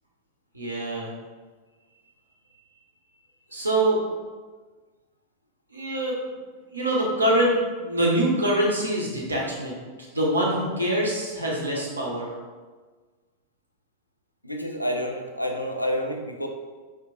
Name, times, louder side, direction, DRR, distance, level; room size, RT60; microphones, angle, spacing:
voice 1, 0.5-1.1 3.5-4.0 5.7-6.2 6.7-9.8 10.1-12.3, right 1 dB, 80° right, -4 dB, 0.8 m, -24 dB
voice 2, 14.4-16.5, equal, 90° left, 2 dB, 0.4 m, -29 dB
4.4 x 2.6 x 2.5 m, 1.4 s
figure-of-eight pair, 90°, 0 cm